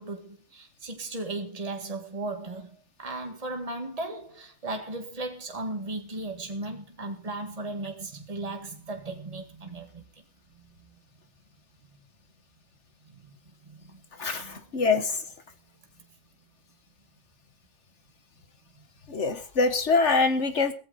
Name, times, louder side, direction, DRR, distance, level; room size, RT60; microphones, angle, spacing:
voice 1, 0.0-10.0 10.5-11.0 13.0-13.4 13.6-14.0 14.3-14.7, right 2 dB, 25° right, 2.2 m, -36 dB
voice 2, 14.2-15.2 19.1-20.7, left 4 dB, 55° left, 1.5 m, -24 dB
16.5 x 14.5 x 4.1 m
omnidirectional pair, 1.5 m